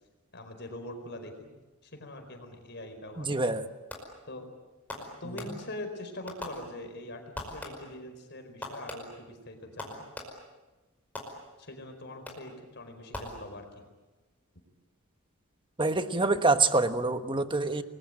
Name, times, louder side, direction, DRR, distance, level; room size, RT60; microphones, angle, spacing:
voice 1, 0.3-1.5 1.8-3.3 4.3-4.5 5.0-10.1 11.6-13.9, left 1 dB, 50° left, 5 dB, 4.6 m, -43 dB
voice 2, 3.2-3.7 15.8-17.8, right 3 dB, 20° right, 9 dB, 1.3 m, -26 dB
Fireworks, 3.9-4.3 4.9-5.9 6.3-7.0 7.3-8.1 8.6-10.6 11.2-11.8 12.3-12.7 13.1-13.9, left 1 dB, 5° left, 5.2 m, -43 dB
30.0 x 21.5 x 9.0 m, 1.2 s
head